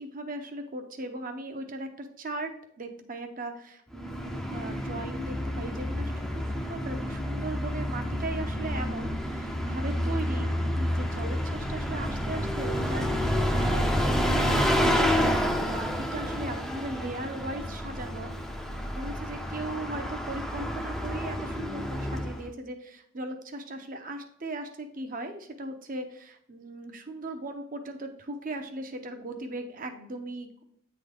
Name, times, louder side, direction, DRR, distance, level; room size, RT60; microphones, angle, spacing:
voice 1, 0.0-2.5 2.8-18.3 18.9-30.6, right 2 dB, 45° right, 6 dB, 0.8 m, -38 dB
Bus, 3.9-22.5, equal, ahead, 0.6 m, -29 dB
8.8 x 3.9 x 3.4 m, 0.72 s
head